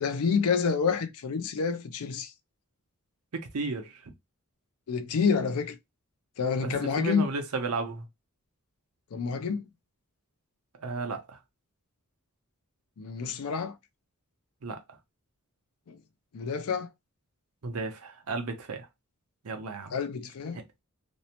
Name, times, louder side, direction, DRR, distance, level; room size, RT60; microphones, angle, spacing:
voice 1, 0.0-2.3 4.9-5.8 6.4-7.3 9.1-9.7 13.0-13.8 15.9-16.0 16.3-16.9 19.9-20.6, left 5 dB, 75° left, 0.4 m, -28 dB
voice 2, 3.3-4.1 6.6-8.1 10.8-11.4 14.6-14.8 17.6-18.9 19.4-19.9, right 3 dB, 75° right, 0.7 m, -34 dB
2.6 x 2.1 x 2.8 m
head